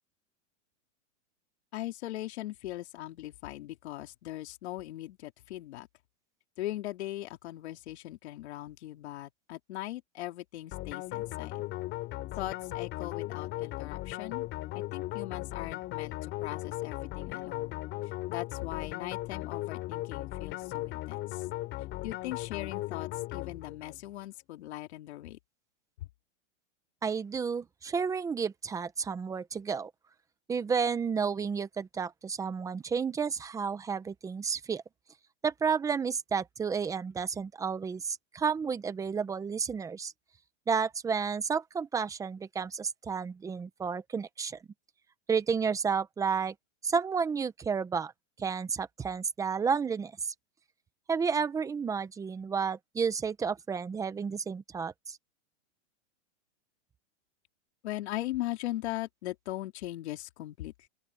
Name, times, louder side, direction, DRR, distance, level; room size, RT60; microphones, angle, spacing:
voice 1, 1.7-5.9 6.6-11.6 12.3-14.5 14.7-17.8 18.0-21.5 22.0-25.4 57.8-60.9, left 15 dB, 60° left, 3.5 m, -39 dB
sound 1, 10.7-24.0, left 17 dB, 30° left, 4.1 m, -37 dB
voice 2, 27.0-29.9 30.5-34.8 35.4-40.1 40.7-44.6 45.3-46.5 46.8-48.1 48.4-50.3 51.1-55.2, right 6 dB, 10° right, 0.8 m, -31 dB
open air
supercardioid pair, 155°, 37 cm